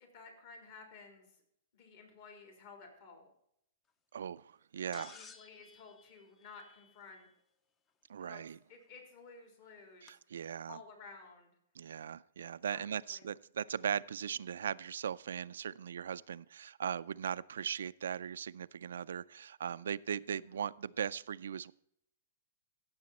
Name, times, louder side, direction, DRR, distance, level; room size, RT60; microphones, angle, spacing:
voice 1, 0.0-1.4 1.7-3.3 4.9-7.3 8.2-8.4 8.7-10.2 10.7-11.6 12.7-13.3 20.2-20.6, left 4 dB, 50° left, 3 dB, 3.6 m, -54 dB
voice 2, 4.1-5.1 8.1-8.6 10.0-10.8 11.8-21.7, right 8 dB, 90° right, 16 dB, 0.4 m, -39 dB
sound 1, 4.9-7.2 8.8-8.9 10.1-10.2, left 5 dB, 20° left, 0.6 m, -56 dB
15.5 x 6.9 x 4.2 m, 0.73 s
hypercardioid pair, 160°, 0 cm